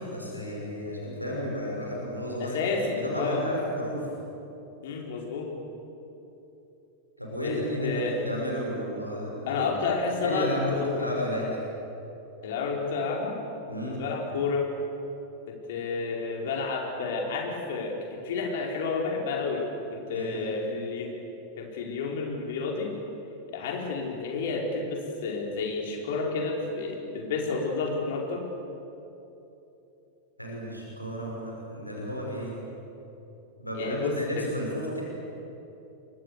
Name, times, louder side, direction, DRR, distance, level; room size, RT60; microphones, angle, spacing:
voice 1, 0.0-2.6 2.9-4.1 7.2-9.6 10.2-11.5 13.7-14.0 20.1-20.5 30.4-32.6 33.6-35.0, equal, 90° left, -2 dB, 6.0 m, -32 dB
voice 2, 2.4-3.4 4.8-5.5 7.4-8.2 9.5-11.1 12.4-13.4 14.0-14.7 15.5-19.6 19.9-21.1 21.6-22.9 23.5-28.4 33.7-34.4, left 4 dB, 55° left, 0 dB, 4.9 m, -30 dB
29.5 x 24.0 x 6.9 m, 2.9 s
figure-of-eight pair, 90°, 0 cm